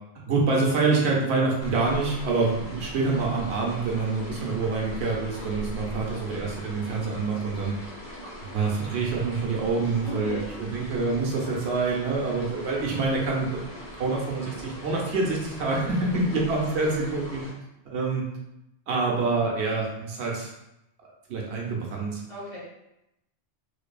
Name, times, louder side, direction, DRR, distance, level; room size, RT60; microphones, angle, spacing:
voice 1, 0.3-7.8 8.5-13.5 14.0-17.4 17.9-18.2 18.9-20.5 21.3-22.2, right 3 dB, 75° right, -2 dB, 0.8 m, -26 dB
sound 1, 1.6-17.5, equal, 65° left, 1.2 m, -41 dB
voice 2, 9.7-10.4 15.8-16.2 22.3-22.6, equal, 35° left, -9 dB, 0.8 m, -39 dB
2.6 x 2.5 x 2.3 m, 0.86 s
omnidirectional pair, 1.2 m